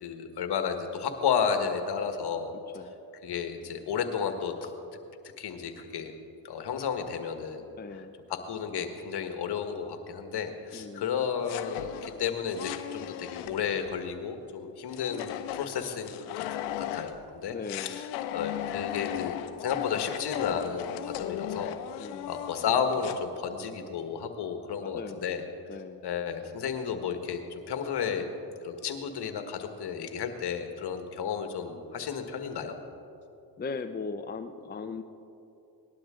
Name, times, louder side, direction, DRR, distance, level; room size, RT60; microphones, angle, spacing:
voice 1, 0.0-2.8 3.2-4.7 5.4-6.1 6.4-8.0 8.3-16.4 16.8-25.4 26.0-28.3 28.6-32.8, left 7 dB, 55° left, 6 dB, 1.6 m, -32 dB
voice 2, 7.8-8.1 10.7-11.1 17.5-18.0 22.0-22.3 24.8-25.3 25.7-26.0 33.6-35.0, left 4 dB, 20° left, 7 dB, 0.6 m, -38 dB
sound 1, 11.4-14.0 14.9-17.2 17.6-23.2, left 12 dB, 90° left, 0.7 m, -36 dB
19.0 x 11.5 x 3.8 m, 2.8 s
supercardioid pair, 65°, 47 cm